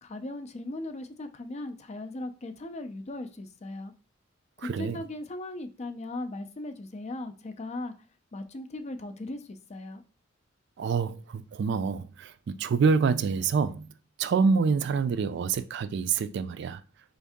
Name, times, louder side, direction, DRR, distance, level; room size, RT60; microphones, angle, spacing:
voice 1, 0.0-3.9 4.6-7.9 8.3-10.0, left 2 dB, 35° left, 0.5 m, -38 dB
voice 2, 4.6-5.0 10.8-13.9 14.2-16.8, right 5 dB, 60° right, 0.3 m, -26 dB
4.5 x 2.7 x 3.5 m
head